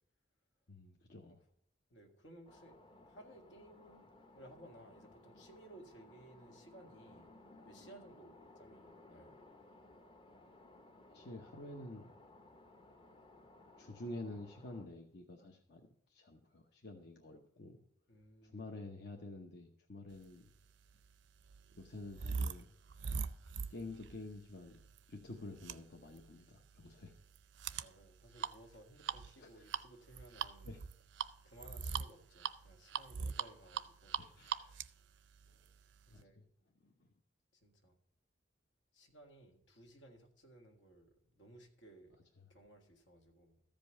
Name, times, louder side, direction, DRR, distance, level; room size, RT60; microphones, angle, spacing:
voice 1, 0.7-1.4 11.1-12.1 13.8-17.8 18.4-20.5 21.8-22.7 23.7-24.8 25.1-27.1 29.4-29.6 30.6-30.8 34.2-34.8 35.5-35.6 36.1-36.4 36.8-36.9 42.4-42.5, left 2 dB, 60° left, 2 dB, 0.9 m, -49 dB
voice 2, 1.9-2.8 3.1-4.1 4.4-7.4 7.7-9.4 18.1-18.7 27.5-30.8 31.4-34.2 36.1-36.5 37.5-38.0 38.9-42.2 42.5-43.6, right 1 dB, 80° left, 3 dB, 1.8 m, -59 dB
sound 1, 2.5-14.9, left 2 dB, 30° left, 0.7 m, -60 dB
sound 2, 20.6-36.2, right 6 dB, 75° right, 0.5 m, -43 dB
14.0 x 5.2 x 6.4 m, 0.72 s
head